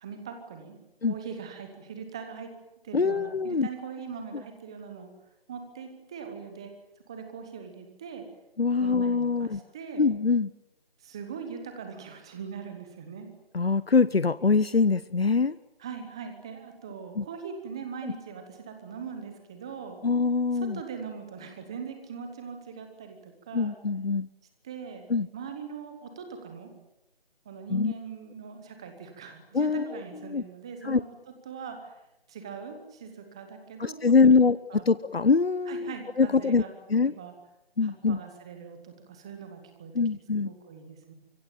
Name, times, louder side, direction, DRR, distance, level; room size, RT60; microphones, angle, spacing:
voice 1, 0.0-0.8 1.0-2.5 2.8-5.1 5.5-6.7 7.1-8.2 8.8-10.0 11.0-13.3 15.8-20.0 20.6-23.8 24.6-25.1 25.3-26.7 27.4-31.2 31.4-31.9 32.3-34.0 34.2-34.4 34.7-34.8 35.7-36.7 37.0-37.3 37.8-39.9 40.4-41.1, right 6 dB, 5° right, 6 dB, 0.9 m, -41 dB
voice 2, 2.9-3.7 4.3-4.4 8.6-9.6 10.0-10.5 13.5-15.6 17.2-17.3 18.0-18.1 20.0-20.8 23.5-24.3 25.1-25.3 27.7-27.9 29.5-30.0 30.3-30.4 30.8-31.0 33.8-34.6 34.8-36.6 36.9-37.1 37.8-38.2 39.9-40.5, left 4 dB, 75° left, 16 dB, 1.0 m, -24 dB
25.5 x 23.0 x 9.0 m, 0.88 s
figure-of-eight pair, 160°, 30 cm